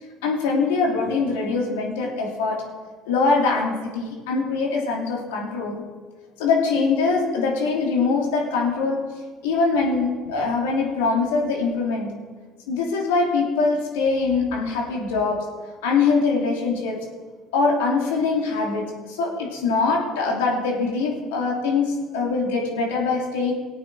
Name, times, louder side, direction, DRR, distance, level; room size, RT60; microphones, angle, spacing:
voice 1, 0.2-2.6 3.1-5.8 6.4-9.1 9.4-12.2 12.7-15.5 15.8-17.0 17.5-23.5, left 4 dB, 90° left, -1 dB, 2.8 m, -23 dB
19.0 x 8.5 x 4.8 m, 1.5 s
supercardioid pair, 75°, 0 cm